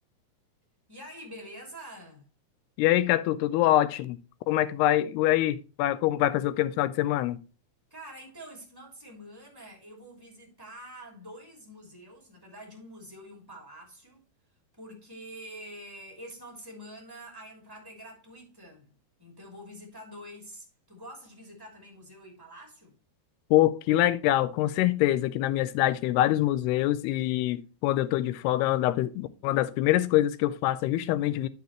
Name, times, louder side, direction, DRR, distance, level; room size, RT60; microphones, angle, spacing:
voice 1, 0.9-2.3 4.5-4.7 7.9-14.2 14.8-18.9 19.2-23.0, equal, 5° right, 2.2 m, -46 dB
voice 2, 2.8-4.2 4.5-7.4 23.5-31.5, left 14 dB, 85° left, 2.6 m, -25 dB
9.2 x 6.8 x 3.0 m
omnidirectional pair, 4.7 m